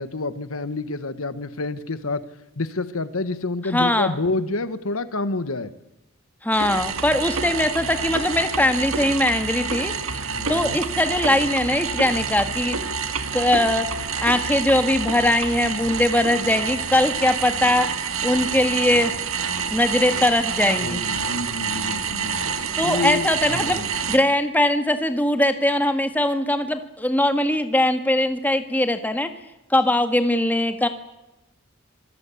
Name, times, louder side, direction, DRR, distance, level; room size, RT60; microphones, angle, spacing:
voice 1, 0.0-2.2 2.6-5.7 10.3-10.8 20.8-22.4 22.8-23.9, left 3 dB, 80° left, 13 dB, 1.4 m, -28 dB
voice 2, 3.7-4.2 6.4-10.2 10.5-12.8 13.3-17.9 18.2-19.1 19.7-21.0 22.8-23.8 24.1-29.3 29.7-30.9, left 1 dB, 10° left, 8 dB, 1.7 m, -21 dB
sound 1, 6.5-24.2, right 5 dB, 75° right, 1.9 m, -28 dB
26.0 x 19.0 x 8.5 m, 0.96 s
head